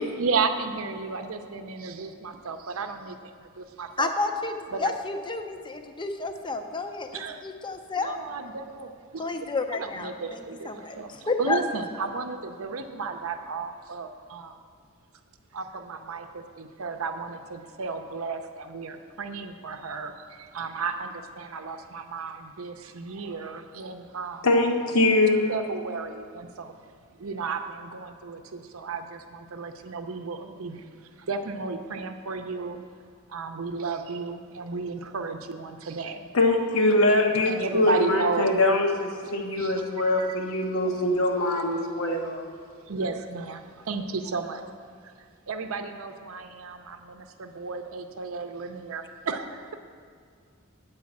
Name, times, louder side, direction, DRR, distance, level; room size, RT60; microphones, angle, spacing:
voice 1, 0.2-4.1 4.7-4.9 7.1-7.4 8.0-9.5 9.7-14.6 15.5-24.5 25.5-26.7 27.1-32.8 33.3-36.3 37.5-38.5 39.2-39.8 42.8-44.6 45.0-45.1 45.5-49.8, right 4 dB, 70° right, 7 dB, 0.6 m, -33 dB
voice 2, 4.0-8.2 9.2-11.6, left 3 dB, 20° left, 6 dB, 0.6 m, -31 dB
voice 3, 24.4-25.5 36.3-42.5, left 2 dB, 70° left, 2 dB, 1.1 m, -23 dB
8.6 x 4.8 x 7.2 m, 2.2 s
head